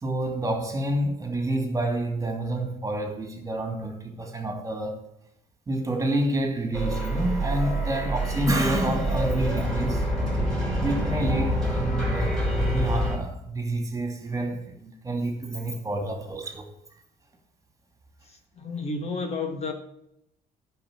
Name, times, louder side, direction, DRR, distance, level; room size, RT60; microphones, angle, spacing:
voice 1, 0.0-5.0 5.7-10.1 10.8-16.7, right 1 dB, 20° right, 2.5 m, -28 dB
sound 1, 6.7-13.2, equal, 5° left, 4.0 m, -26 dB
voice 2, 18.6-19.7, left 3 dB, 40° left, 1.5 m, -31 dB
10.5 x 5.8 x 7.3 m
cardioid pair, 110°, 17 cm